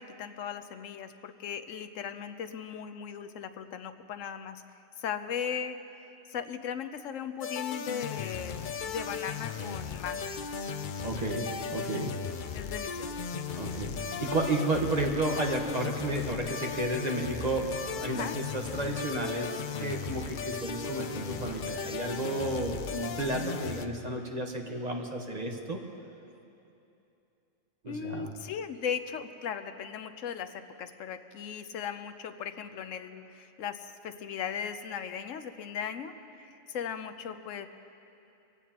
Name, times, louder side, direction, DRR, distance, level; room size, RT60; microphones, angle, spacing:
voice 1, 0.0-4.6 5.0-10.3 12.5-13.1 13.3-13.6 18.1-18.3 27.9-36.1 36.5-37.7, left 7 dB, 75° left, 9 dB, 1.1 m, -38 dB
sound 1, 7.4-23.9, left 6 dB, 55° left, 0.6 m, -37 dB
voice 2, 11.0-12.1 13.6-25.8 27.8-28.3, right 2 dB, 35° right, 1 dB, 1.3 m, -32 dB
23.0 x 16.5 x 2.9 m, 2.8 s
omnidirectional pair, 1.4 m